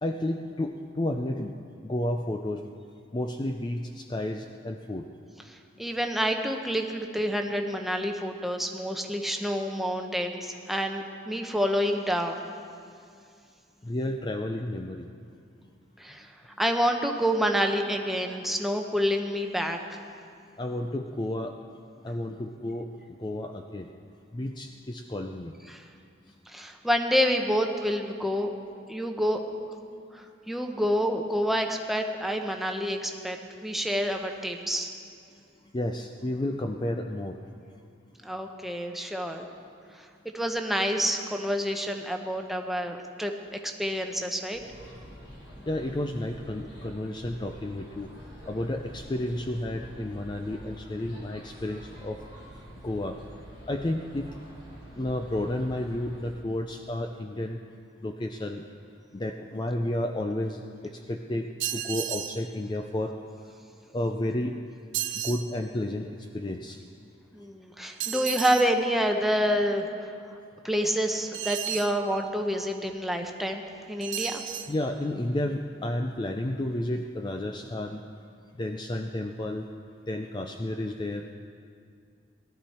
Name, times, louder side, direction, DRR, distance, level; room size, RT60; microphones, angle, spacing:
voice 1, 0.0-1.5 1.8-2.6 3.1-5.1 13.8-15.1 20.6-21.6 22.0-22.9 23.2-23.9 24.3-25.5 35.7-37.4 45.7-48.1 48.5-52.2 52.8-53.2 53.7-54.3 55.0-57.6 58.0-58.6 59.1-63.1 63.9-64.5 65.2-66.8 74.7-78.0 78.6-79.7 80.1-81.3, left 1 dB, 25° left, 4 dB, 0.4 m, -31 dB
voice 2, 5.5-12.4 16.0-19.8 25.7-25.8 26.5-28.5 28.9-29.4 30.1-34.9 38.2-39.5 40.0-40.1 40.3-44.6 67.3-70.1 70.6-74.4, equal, ahead, 3 dB, 0.8 m, -28 dB
sound 1, 44.5-56.3, equal, 60° left, 3.5 m, -47 dB
sound 2, 61.6-62.4 64.9-65.5 68.0-68.7 71.3-72.0 74.0-74.7, right 11 dB, 75° right, 0.7 m, -33 dB
18.5 x 12.5 x 4.3 m, 2.4 s
head